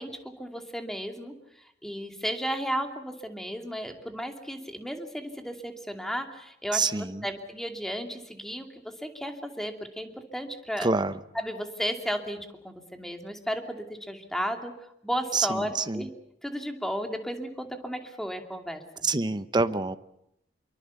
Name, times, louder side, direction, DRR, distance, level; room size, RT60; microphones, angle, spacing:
voice 1, 0.0-10.9 11.3-16.1 16.4-19.1, equal, ahead, 4 dB, 2.6 m, -34 dB
voice 2, 6.7-7.2 10.8-11.2 15.3-16.1 19.0-20.0, right 3 dB, 25° right, 12 dB, 0.9 m, -26 dB
26.0 x 23.5 x 7.1 m, 0.79 s
head